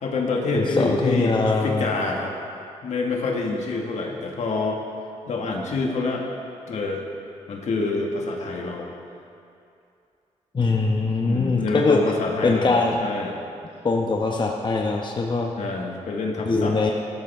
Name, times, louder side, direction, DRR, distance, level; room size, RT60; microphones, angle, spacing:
voice 1, 0.0-2.4 2.8-4.8 5.3-6.2 6.7-7.0 7.5-8.9 11.3-13.4 15.6-16.8, left 3 dB, 70° left, 0 dB, 1.8 m, -26 dB
voice 2, 0.5-1.9 10.5-12.0 12.4-13.0 13.8-15.5 16.4-16.9, left 3 dB, 40° left, 1 dB, 1.0 m, -22 dB
14.5 x 12.5 x 3.6 m, 2.5 s
cardioid pair, 60°, 12 cm